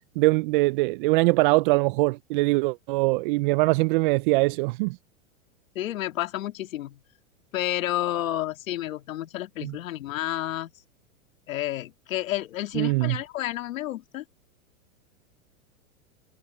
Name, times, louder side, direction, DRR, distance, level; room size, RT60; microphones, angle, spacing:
voice 1, 0.2-5.0 9.6-9.7 12.7-13.2, right 23 dB, 40° right, 0.4 m, -22 dB
voice 2, 5.8-7.0 7.5-10.7 11.5-14.2, left 14 dB, 75° left, 2.3 m, -30 dB
hypercardioid pair, 120°, 40 cm